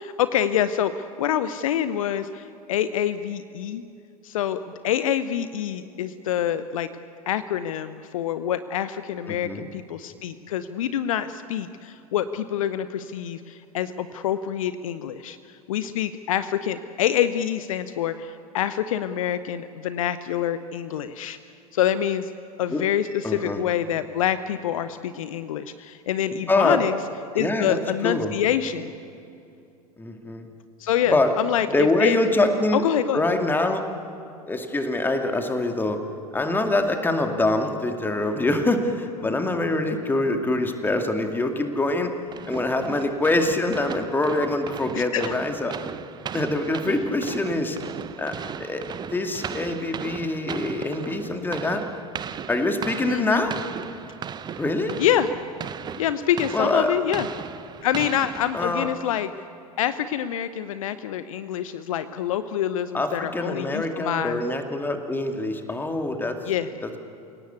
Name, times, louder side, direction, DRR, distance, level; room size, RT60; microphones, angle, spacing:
voice 1, 0.0-3.8 4.2-6.9 7.3-15.4 15.7-21.4 21.7-22.3 22.6-26.9 27.3-28.9 30.8-32.2 32.7-33.2 44.9-45.3 46.9-47.0 53.1-53.4 55.0-55.3 56.0-57.3 57.8-59.3 59.8-64.4 66.4-66.7, left 10 dB, 60° left, 13 dB, 0.8 m, -26 dB
voice 2, 9.3-9.7 22.7-22.8 23.2-23.6 26.5-26.8 27.4-28.3 30.0-30.4 31.1-31.3 31.7-32.8 33.1-33.8 34.5-36.0 36.3-42.1 42.5-45.7 46.3-47.8 48.2-48.9 49.1-51.8 52.5-53.5 54.6-55.0 56.5-56.9 58.5-58.9 62.9-66.4 66.8-67.0, left 2 dB, 10° left, 5 dB, 2.3 m, -24 dB
sound 1, 42.3-59.1, right 8 dB, 20° right, 0.8 m, -37 dB
28.5 x 18.0 x 8.3 m, 2.6 s
figure-of-eight pair, 85°, 20 cm